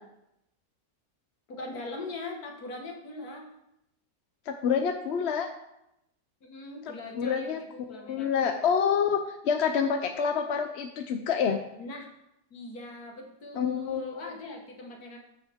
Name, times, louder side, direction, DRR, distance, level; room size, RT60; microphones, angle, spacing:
voice 1, 1.5-3.4 6.4-8.6 11.8-12.1 12.5-15.2, left 2 dB, 80° left, 1 dB, 2.1 m, -41 dB
voice 2, 4.5-5.5 7.2-11.6 13.6-14.2, left 7 dB, 55° left, 6 dB, 0.8 m, -27 dB
14.5 x 6.5 x 3.6 m, 0.83 s
omnidirectional pair, 1.6 m